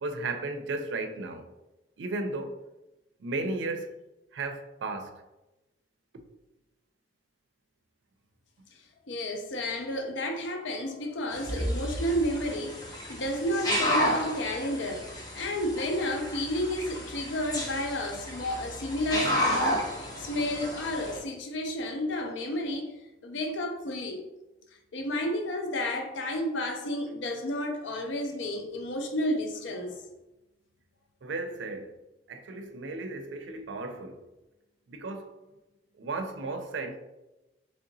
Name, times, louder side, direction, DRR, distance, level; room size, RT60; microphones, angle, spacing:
voice 1, 0.0-1.5 2.0-2.6 3.2-3.9 4.3-5.2 31.2-31.9 32.3-34.2 34.9-35.3 36.0-37.0, right 3 dB, 75° right, 0.4 m, -34 dB
voice 2, 9.1-15.1 15.3-19.9 20.2-22.9 23.2-24.3 24.9-30.0, left 1 dB, 75° left, 0.5 m, -31 dB
sound 1, 11.3-21.2, equal, 20° left, 0.5 m, -32 dB
3.6 x 3.3 x 2.6 m
head